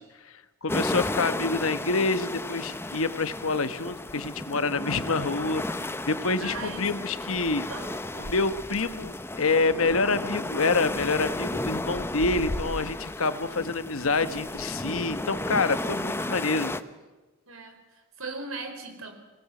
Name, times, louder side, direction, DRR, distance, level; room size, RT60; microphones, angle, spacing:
voice 1, 0.2-7.7 8.2-16.7, left 3 dB, 85° left, 11 dB, 1.2 m, -27 dB
sound 1, 0.7-16.8, left 1 dB, 10° left, 0.6 m, -33 dB
voice 2, 6.4-7.1 7.7-8.3 16.2-16.9 17.5-19.1, right 3 dB, 85° right, 5 dB, 4.4 m, -40 dB
24.0 x 18.5 x 7.7 m, 1.2 s
head